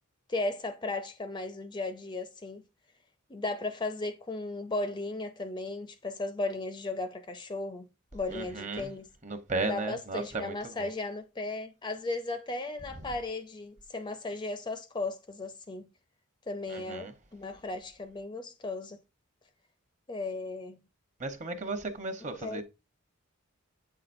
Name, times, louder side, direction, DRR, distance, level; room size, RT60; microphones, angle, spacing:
voice 1, 0.3-2.6 3.3-9.1 9.7-15.9 16.5-19.0 20.1-20.8 22.4-22.6, left 2 dB, 20° left, 0.4 m, -36 dB
voice 2, 8.3-8.9 9.2-10.9 12.9-13.1 16.7-17.1 21.2-22.6, right 3 dB, 35° right, 0.9 m, -35 dB
8.1 x 5.7 x 2.6 m
head